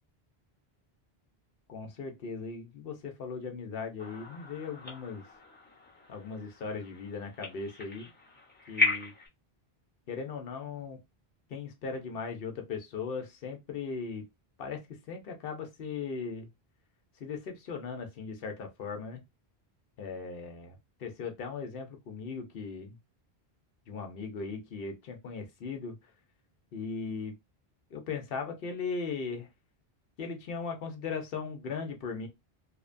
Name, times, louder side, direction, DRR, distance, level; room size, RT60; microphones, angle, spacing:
voice 1, 1.7-5.2 6.1-8.1 8.7-9.1 10.1-11.0 11.5-14.3 14.6-14.8 15.1-16.5 17.2-19.2 20.0-23.0 23.9-26.1 26.7-27.3 27.9-29.5 30.2-32.3, left 5 dB, 65° left, 0.8 m, -38 dB
sound 1, 4.0-9.3, left 2 dB, 10° left, 0.7 m, -36 dB
2.7 x 2.1 x 2.4 m
omnidirectional pair, 1.1 m